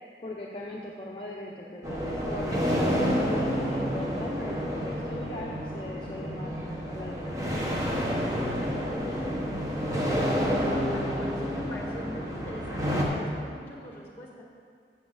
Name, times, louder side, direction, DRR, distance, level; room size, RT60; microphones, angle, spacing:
voice 1, 0.2-7.5, left 1 dB, 30° left, -3 dB, 0.7 m, -39 dB
sound 1, 1.8-13.0, equal, 20° right, 1.2 m, -29 dB
voice 2, 8.5-9.2 9.6-14.4, equal, 10° left, -2 dB, 1.7 m, -43 dB
14.0 x 7.1 x 3.9 m, 2.2 s
head